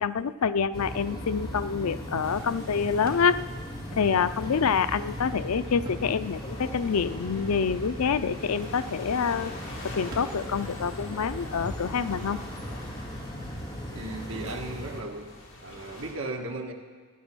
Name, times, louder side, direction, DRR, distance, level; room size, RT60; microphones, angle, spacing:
voice 1, 0.0-3.4 4.0-9.5 9.8-12.4, left 6 dB, 85° left, 13 dB, 0.5 m, -27 dB
sound 1, 0.7-15.0, equal, 20° left, 2.2 m, -38 dB
sound 2, 2.2-16.1, left 1 dB, 60° left, 3.0 m, -47 dB
sound 3, 3.0-13.6, right 1 dB, 45° right, 2.1 m, -52 dB
voice 2, 13.9-15.3 15.6-16.7, right 2 dB, 65° right, 2 dB, 1.6 m, -36 dB
15.5 x 11.0 x 6.2 m, 1.5 s
head